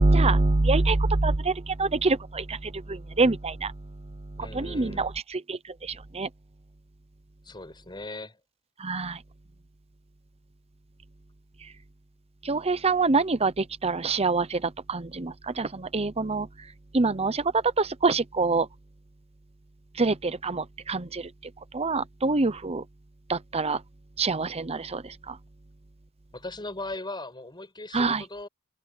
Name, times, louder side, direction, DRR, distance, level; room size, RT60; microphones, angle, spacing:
voice 1, 0.0-6.3 8.8-9.2 11.6-11.7 12.4-16.7 16.9-18.7 19.9-22.8 23.3-23.8 24.2-25.4 27.9-28.2, right 3 dB, 30° right, 0.8 m, -26 dB
voice 2, 4.4-5.1 7.4-8.4 26.3-28.5, left 2 dB, 20° left, 5.1 m, -38 dB
head